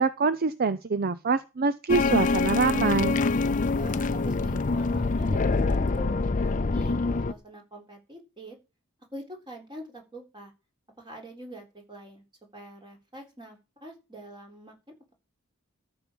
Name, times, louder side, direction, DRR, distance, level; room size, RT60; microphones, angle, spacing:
voice 1, 0.0-3.2, right 4 dB, 45° right, 14 dB, 0.6 m, -25 dB
sound 1, 1.9-7.3, left 3 dB, 40° left, 0.6 m, -25 dB
voice 2, 3.7-8.6 9.1-10.5 11.0-12.2 12.5-15.1, right 1 dB, 25° right, 2 dB, 3.8 m, -44 dB
13.5 x 7.0 x 6.2 m, 0.29 s
head